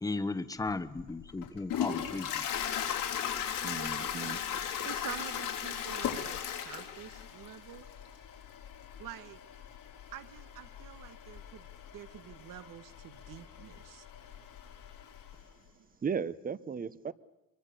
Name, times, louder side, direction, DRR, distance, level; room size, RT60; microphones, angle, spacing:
voice 1, 0.0-2.5, left 3 dB, 10° left, 12 dB, 1.0 m, -36 dB
Toilet flush, 0.7-15.4, left 9 dB, 90° left, 3.6 m, -38 dB
voice 2, 3.6-4.4 16.0-17.1, right 6 dB, 25° right, 17 dB, 0.9 m, -36 dB
voice 3, 4.8-7.9 9.0-9.4 10.1-14.0 15.7-15.9, right 11 dB, 80° right, 12 dB, 1.6 m, -47 dB
24.5 x 23.5 x 6.8 m, 0.97 s
cardioid pair, 155°, 32 cm